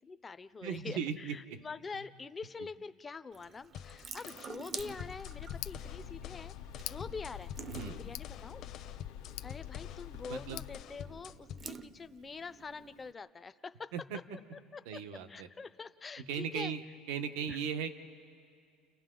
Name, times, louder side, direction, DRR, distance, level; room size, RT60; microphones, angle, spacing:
voice 1, 0.0-7.5 8.0-8.6 9.4-13.9 14.5-15.0 15.3-16.7 17.5-17.6, left 4 dB, 20° left, 12 dB, 0.5 m, -45 dB
voice 2, 0.6-1.4 7.7-8.0 10.3-10.6 13.9-14.2 14.8-15.5 16.3-16.8 17.1-17.9, right 7 dB, 80° right, 9 dB, 1.1 m, -37 dB
Water tap faucet / Sink (filling or washing) / Drip, 3.3-13.1, right 6 dB, 30° right, 0.6 m, -50 dB
sound 1, 3.7-11.7, left 9 dB, 50° left, 0.8 m, -48 dB
Tick, 4.8-10.8, left 14 dB, 75° left, 0.5 m, -45 dB
30.0 x 30.0 x 3.8 m, 2.3 s
cardioid pair, 130°, 0 cm